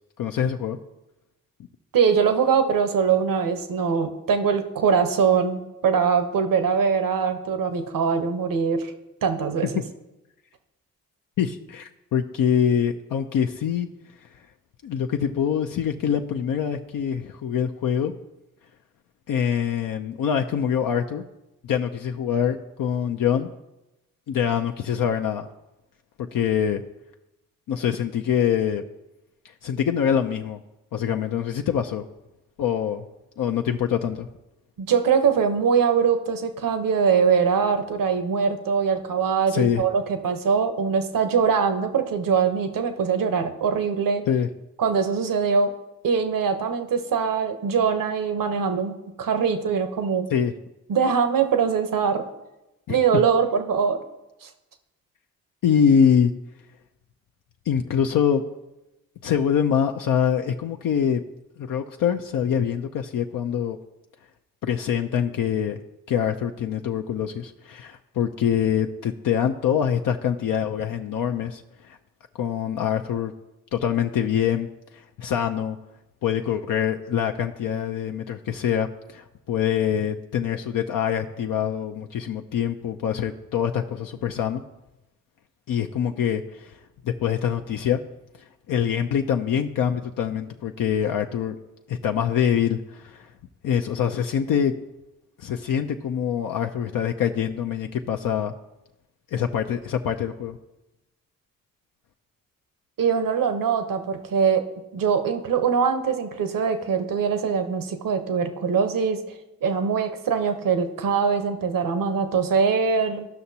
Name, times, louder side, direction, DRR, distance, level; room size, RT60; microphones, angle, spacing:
voice 1, 0.2-0.8 11.4-13.9 14.8-18.1 19.3-21.2 21.6-23.5 24.3-25.5 26.2-26.8 27.7-28.8 29.4-30.6 30.9-32.0 32.6-33.0 33.4-34.3 39.5-39.8 44.3-44.5 50.3-50.5 52.9-53.0 55.6-56.3 57.7-58.4 59.2-61.2 61.6-63.8 64.6-65.8 66.1-71.6 71.9-72.0 72.4-73.3 73.7-74.7 74.9-75.8 76.2-84.6 85.7-86.8 87.0-88.0 88.7-91.6 91.9-93.3 93.6-94.7 95.4-98.5 99.3-100.6, left 8 dB, 70° left, 4 dB, 0.5 m, -24 dB
voice 2, 1.9-8.9 9.2-9.7 34.8-44.2 44.8-45.7 46.0-50.3 50.9-52.2 52.9-54.0 54.4-54.5 103.0-104.7 104.9-113.3, right 6 dB, 70° right, 8 dB, 1.0 m, -22 dB
14.0 x 5.8 x 2.8 m, 0.95 s
supercardioid pair, 40°, 35 cm